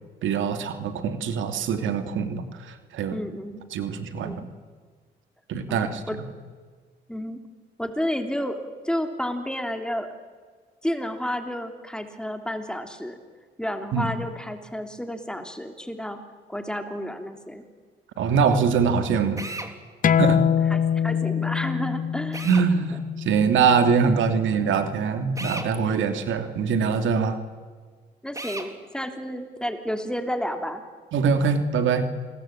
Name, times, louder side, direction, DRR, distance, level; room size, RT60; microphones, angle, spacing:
voice 1, 0.2-3.2 3.7-4.4 5.5-6.2 13.9-14.1 18.2-19.4 20.2-20.4 22.4-27.4 31.1-32.0, right 6 dB, 80° right, 8 dB, 2.7 m, -23 dB
voice 2, 3.1-3.6 4.2-4.5 5.7-6.2 7.1-7.4 7.8-8.6 8.8-10.1 10.8-13.2 13.6-16.2 16.5-17.6 20.7-22.5 28.2-30.8, equal, 5° left, 6 dB, 3.1 m, -31 dB
Drill, 19.4-19.7 22.3-22.7 25.4-25.7 28.3-28.7, right 2 dB, 15° right, 3.3 m, -34 dB
sound 1, 20.0-25.2, left 8 dB, 45° left, 0.7 m, -25 dB
27.5 x 20.5 x 8.8 m, 1.5 s
cardioid pair, 90°, 20 cm